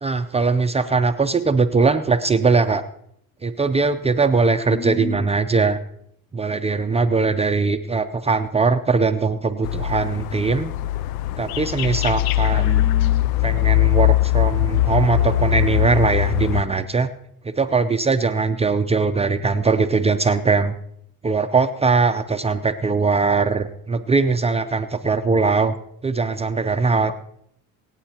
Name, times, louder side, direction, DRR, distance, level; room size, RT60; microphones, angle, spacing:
voice 1, 0.0-2.8 3.4-5.8 6.3-10.7 11.4-12.8 13.4-17.1 17.4-20.7 21.2-25.7 26.0-27.1, right 4 dB, 15° right, 8 dB, 0.5 m, -20 dB
voice 2, 4.7-5.2 12.5-13.3 27.1-27.2, left 5 dB, 40° left, 11 dB, 0.7 m, -31 dB
sound 1, 9.6-16.6, left 15 dB, 75° left, 0.5 m, -21 dB
25.0 x 9.0 x 2.9 m, 0.72 s
cardioid pair, 135°, 37 cm